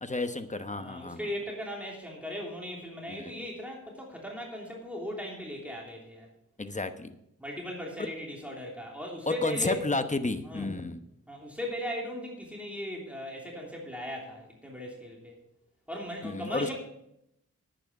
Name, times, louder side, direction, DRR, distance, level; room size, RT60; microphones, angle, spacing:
voice 1, 0.0-1.2 3.1-3.3 6.6-7.1 8.0-8.1 9.3-11.0 16.2-16.7, left 2 dB, 25° left, 9 dB, 1.0 m, -32 dB
voice 2, 0.7-6.3 7.4-9.8 10.5-10.8 11.3-15.3 15.9-16.7, equal, 5° right, -2 dB, 3.1 m, -38 dB
11.0 x 9.1 x 5.4 m, 0.79 s
cardioid pair, 55°, 32 cm